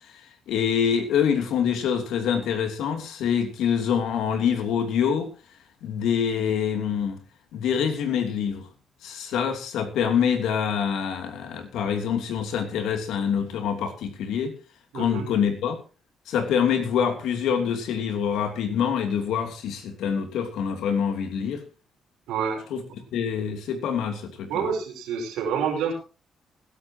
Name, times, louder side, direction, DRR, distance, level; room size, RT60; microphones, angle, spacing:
voice 1, 0.5-5.3 5.8-7.2 7.5-8.7 9.0-14.5 14.9-15.8 16.3-21.6 22.7-22.8 23.1-24.6, left 7 dB, 85° left, 2.9 m, -25 dB
voice 2, 14.9-15.3 22.3-22.6 24.5-25.9, right 7 dB, 90° right, 5.7 m, -27 dB
21.0 x 11.5 x 2.9 m
cardioid pair, 90°, 0 cm